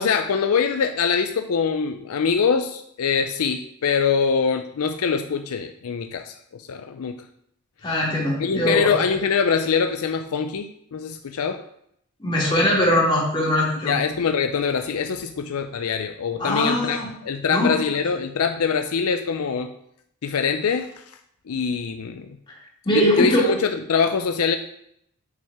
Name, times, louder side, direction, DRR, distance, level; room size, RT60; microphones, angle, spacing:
voice 1, 0.0-7.2 8.4-11.6 13.8-17.0 17.2-19.7 20.2-20.9 21.5-22.3 22.9-24.6, left 6 dB, 75° left, 7 dB, 0.5 m, -23 dB
voice 2, 7.8-9.1 12.2-14.0 16.4-17.1 17.5-17.7 22.8-23.5, left 1 dB, 25° left, -5 dB, 2.6 m, -21 dB
8.3 x 5.7 x 3.5 m, 0.72 s
head